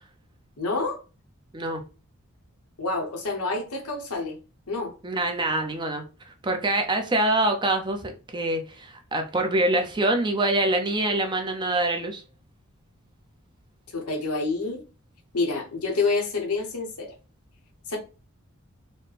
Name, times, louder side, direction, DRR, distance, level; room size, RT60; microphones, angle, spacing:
voice 1, 0.6-1.0 2.8-4.4 4.7-4.9 13.9-14.8 15.3-17.1 17.9-18.0, left 3 dB, 85° left, 1.1 m, -28 dB
voice 2, 5.0-12.2, right 2 dB, 20° right, 0.6 m, -25 dB
4.2 x 2.2 x 3.3 m
head